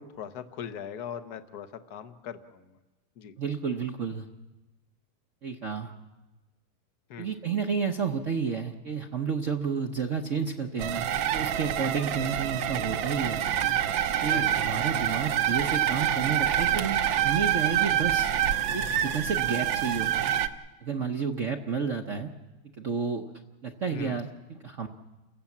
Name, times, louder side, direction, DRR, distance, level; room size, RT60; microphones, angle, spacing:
voice 1, 0.0-2.7 3.2-3.3 7.1-7.3 14.3-14.7 23.9-24.2, left 8 dB, 50° left, 9 dB, 1.5 m, -40 dB
voice 2, 3.4-4.3 5.4-5.9 7.2-13.4 14.2-18.3 18.7-20.4 20.8-22.3 22.8-23.2 23.6-24.9, right 6 dB, 45° right, 3 dB, 1.0 m, -31 dB
sound 1, 10.8-20.5, right 11 dB, 70° right, 1.6 m, -27 dB
30.0 x 16.0 x 7.3 m, 1.1 s
omnidirectional pair, 2.4 m